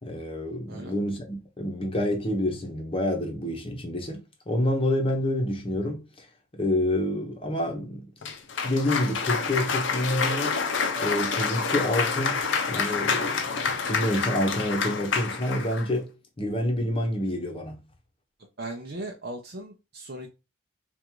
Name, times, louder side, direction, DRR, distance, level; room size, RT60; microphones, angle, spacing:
voice 1, 0.0-4.2 4.5-6.3 6.5-8.1 8.6-10.6 11.0-12.4 12.7-16.1 16.4-17.8, left 1 dB, 25° left, 0.9 m, -28 dB
Cheering / Applause, 8.2-15.9, left 5 dB, 60° left, 0.7 m, -28 dB
voice 2, 18.6-20.3, right 1 dB, 50° right, 0.6 m, -37 dB
3.6 x 2.5 x 4.6 m
head